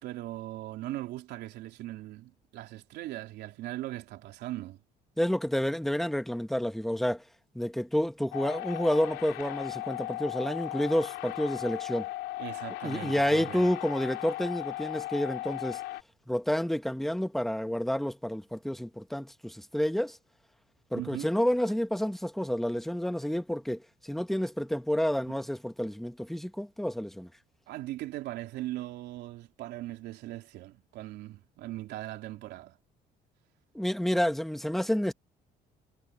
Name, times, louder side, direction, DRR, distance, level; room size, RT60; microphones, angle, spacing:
voice 1, 0.0-4.8 12.4-13.7 20.9-21.3 25.3-25.4 27.7-32.8, right 15 dB, 80° right, 3.4 m, -39 dB
voice 2, 5.2-7.2 7.5-12.1 12.8-15.8 16.3-20.2 20.9-27.3 33.7-35.1, equal, ahead, 1.5 m, -29 dB
sound 1, 8.3-16.0, left 17 dB, 85° left, 4.0 m, -37 dB
cardioid pair, 110°, 17 cm